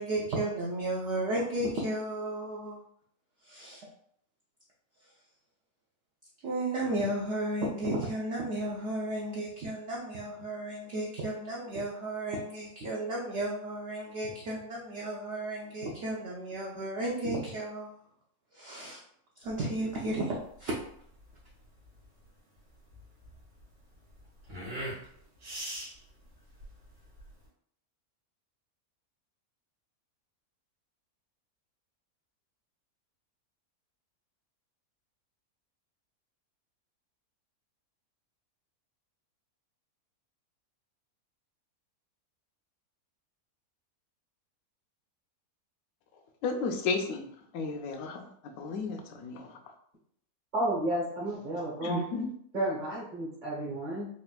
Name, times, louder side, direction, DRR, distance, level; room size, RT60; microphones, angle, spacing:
voice 1, 0.0-2.8 3.4-3.9 6.4-17.9 18.5-19.0 19.4-20.7, right 1 dB, 60° right, 0.8 m, -33 dB
sound 1, 19.4-27.5, right 1 dB, 90° right, 2.2 m, -43 dB
voice 2, 46.4-47.2 47.5-48.3 48.6-49.6 51.8-52.3, left 4 dB, 70° left, 0.9 m, -33 dB
voice 3, 50.5-52.1 52.5-54.1, right 1 dB, 35° right, 1.0 m, -32 dB
4.1 x 2.4 x 2.2 m
omnidirectional pair, 1.6 m